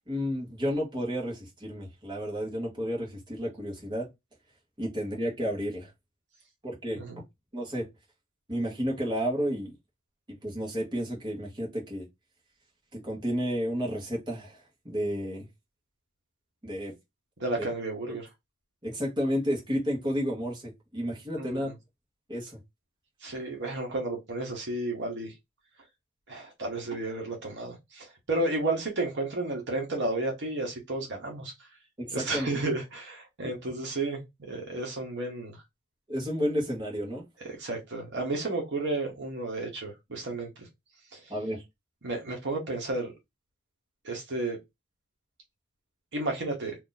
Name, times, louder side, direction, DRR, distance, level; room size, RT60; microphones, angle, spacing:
voice 1, 0.1-4.1 4.8-5.9 6.6-7.0 7.5-7.8 8.5-9.8 10.4-12.1 12.9-15.5 16.6-16.9 18.8-21.7 22.3-22.6 32.0-32.5 36.1-37.2 41.3-41.6, equal, 20° right, 1.3 m, -31 dB
voice 2, 17.4-18.3 21.3-21.7 23.2-25.3 26.3-31.5 32.1-34.2 34.5-35.6 37.4-40.7 41.1-41.2 42.0-43.1 44.0-44.6 46.1-46.8, right 2 dB, 55° right, 1.1 m, -32 dB
3.0 x 2.5 x 3.9 m
head